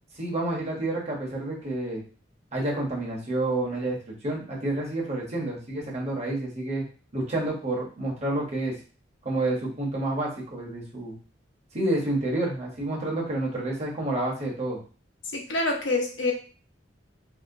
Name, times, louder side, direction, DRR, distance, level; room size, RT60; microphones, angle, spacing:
voice 1, 0.2-2.0 2.5-6.8 7.1-8.8 9.2-11.1 11.7-14.8, right 2 dB, 35° right, -2 dB, 0.9 m, -29 dB
voice 2, 15.3-16.3, left 2 dB, 75° left, 1 dB, 0.8 m, -26 dB
2.9 x 2.7 x 2.6 m, 0.38 s
head